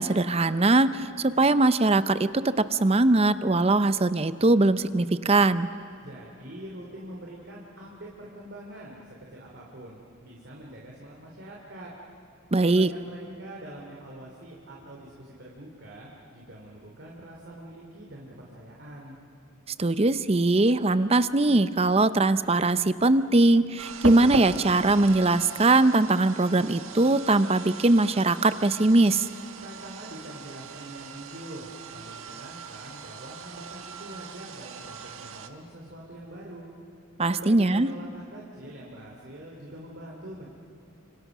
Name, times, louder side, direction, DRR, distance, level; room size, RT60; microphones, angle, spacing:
voice 1, 0.0-5.7 12.5-12.9 19.8-29.3 37.2-37.9, right 2 dB, 30° right, 13 dB, 0.7 m, -21 dB
voice 2, 6.0-11.9 12.5-19.2 29.6-36.7 37.3-40.5, right 1 dB, 55° right, -2 dB, 3.1 m, -44 dB
sound 1, 23.8-35.5, right 4 dB, 80° right, 1.4 m, -39 dB
30.0 x 26.5 x 6.1 m, 3.0 s
head